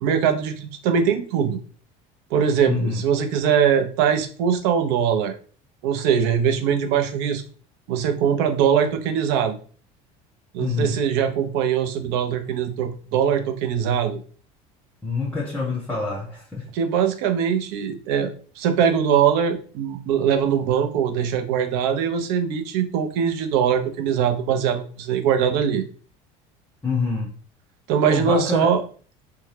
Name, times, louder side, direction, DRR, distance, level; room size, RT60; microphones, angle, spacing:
voice 1, 0.0-1.6 2.3-5.3 5.8-7.4 7.9-9.5 10.5-14.2 16.7-25.8 27.9-28.8, right 7 dB, 75° right, 7 dB, 0.6 m, -22 dB
voice 2, 2.7-3.0 10.6-11.0 15.0-16.7 26.8-27.3 28.1-28.8, left 4 dB, 10° left, -1 dB, 0.5 m, -26 dB
2.7 x 2.3 x 3.2 m, 0.41 s
cardioid pair, 125°, 17 cm